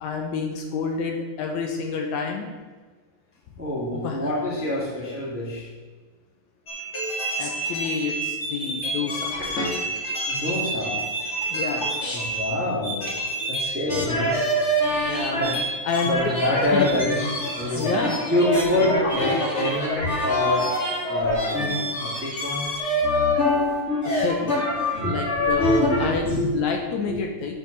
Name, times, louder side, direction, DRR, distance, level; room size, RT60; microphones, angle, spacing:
voice 1, 0.0-2.5 3.9-4.3 7.4-9.4 11.5-12.0 15.1-16.1 16.7-16.9 17.8-18.3 24.2-24.6 25.0-26.3 26.5-27.6, left 5 dB, 70° left, 2 dB, 2.1 m, -29 dB
voice 2, 3.6-5.7 10.3-11.0 12.1-13.1 13.5-14.5 15.3-15.6 16.1-17.9 18.2-20.7 21.1-21.7 22.0-22.7 25.0-27.2, left 1 dB, 5° right, -4 dB, 1.1 m, -26 dB
sound 1, 6.7-12.6 12.8-26.2, equal, 30° left, 1.3 m, -26 dB
9.1 x 5.2 x 6.4 m, 1.3 s
omnidirectional pair, 3.7 m